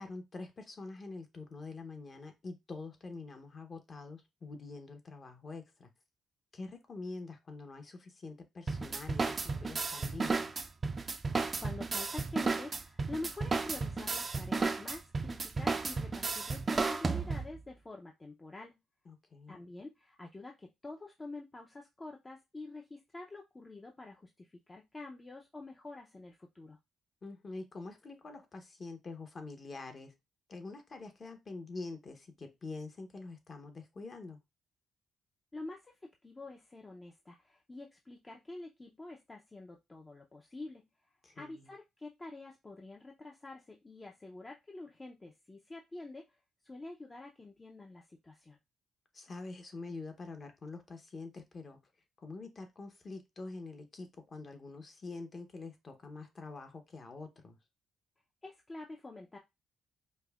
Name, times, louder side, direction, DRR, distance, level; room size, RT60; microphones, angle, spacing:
voice 1, 0.0-5.9 6.5-10.5 19.1-19.6 27.2-30.1 30.5-34.4 41.2-41.7 49.1-51.8 52.2-57.6, left 3 dB, 40° left, 0.8 m, -46 dB
sound 1, 8.7-17.6, right 4 dB, 30° right, 0.4 m, -33 dB
voice 2, 11.6-18.8 19.5-26.8 35.5-40.8 41.3-46.4 46.6-48.6 58.4-59.4, left 2 dB, 20° left, 0.5 m, -47 dB
5.2 x 2.1 x 2.3 m
cardioid pair, 90°, 0 cm